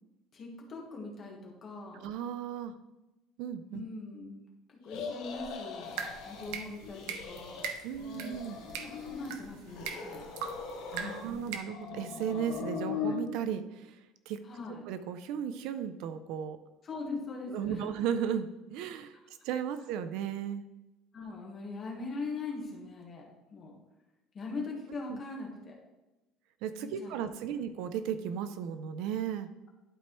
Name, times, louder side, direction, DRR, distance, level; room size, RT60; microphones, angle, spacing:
voice 1, 0.3-2.1 3.7-4.4 4.7-6.0 6.2-7.6 8.8-10.3 11.0-11.6 14.4-14.8 16.8-18.0 21.1-23.2 23.5-23.8 24.3-25.8 26.8-27.6, left 3 dB, 25° left, -1 dB, 1.4 m, -41 dB
voice 2, 1.9-2.7 3.4-3.8 7.8-8.6 10.9-14.0 14.3-14.4 14.9-16.6 17.5-19.1 19.4-20.6 25.0-25.2 26.6-29.5, right 8 dB, 60° right, 11 dB, 0.4 m, -35 dB
sound 1, 4.9-6.5 6.8-7.7 8.0-9.3 9.7-11.3 11.6-13.2, left 6 dB, 60° left, 1.1 m, -40 dB
sound 2, 5.8-11.6, right 6 dB, 80° right, 0.8 m, -42 dB
11.5 x 4.5 x 3.1 m, 1.0 s
cardioid pair, 180°, 0 cm